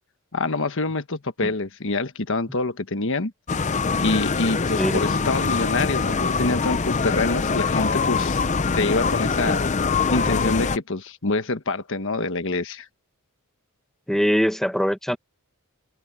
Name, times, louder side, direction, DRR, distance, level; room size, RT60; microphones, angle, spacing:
voice 1, 0.3-3.3 4.0-8.4 8.8-9.6 10.1-12.9, left 3 dB, 60° left, 1.4 m, -26 dB
sound 1, 3.5-10.8, left 4 dB, 30° left, 0.6 m, -23 dB
voice 2, 4.8-5.1 14.1-15.2, equal, ahead, 1.1 m, -22 dB
head